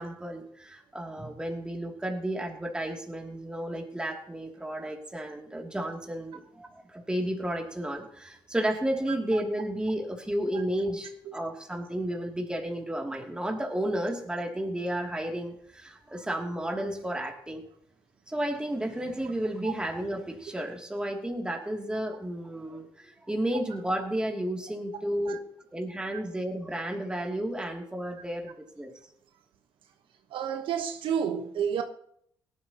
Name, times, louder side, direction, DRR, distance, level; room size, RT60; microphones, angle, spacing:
voice 1, 0.0-17.7 18.3-25.4 25.7-28.9, right 1 dB, 10° right, 2.8 m, -32 dB
voice 2, 30.3-31.8, right 8 dB, 85° right, 1.2 m, -30 dB
18.5 x 12.0 x 3.0 m
cardioid pair, 90°, 9 cm